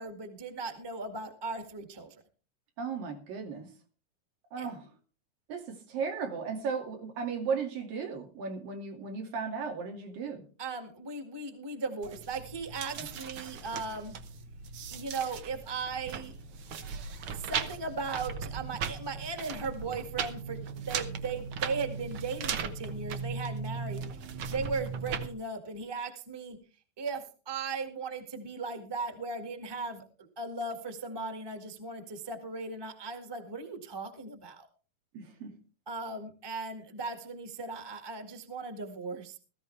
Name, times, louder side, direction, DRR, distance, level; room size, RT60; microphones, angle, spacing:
voice 1, 0.0-2.1 4.6-4.7 10.6-14.2 14.9-16.3 17.3-20.6 20.9-24.0 24.5-26.6 27.0-34.7 35.9-39.4, right 4 dB, 15° right, 6 dB, 1.0 m, -37 dB
voice 2, 2.8-3.7 4.5-4.9 5.5-10.4 13.0-13.1 35.1-35.6, right 5 dB, 85° right, 3 dB, 4.1 m, -35 dB
sound 1, 12.0-25.3, right 6 dB, 70° right, 1.3 m, -38 dB
16.0 x 14.5 x 3.3 m, 0.36 s
omnidirectional pair, 3.9 m